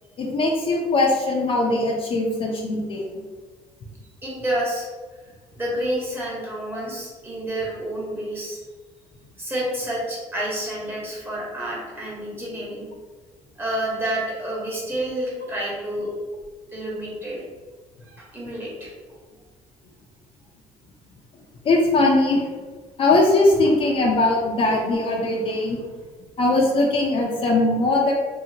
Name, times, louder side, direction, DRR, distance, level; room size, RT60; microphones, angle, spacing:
voice 1, 0.2-3.2 21.6-22.4 23.0-25.8 26.4-28.1, left 2 dB, 45° left, -1 dB, 0.5 m, -20 dB
voice 2, 4.2-4.9 5.6-8.6 9.4-12.8 13.6-16.1 16.7-17.4 18.0-18.9, right 1 dB, 15° right, -5 dB, 1.0 m, -29 dB
2.8 x 2.7 x 2.7 m, 1.4 s
cardioid pair, 105°, 13 cm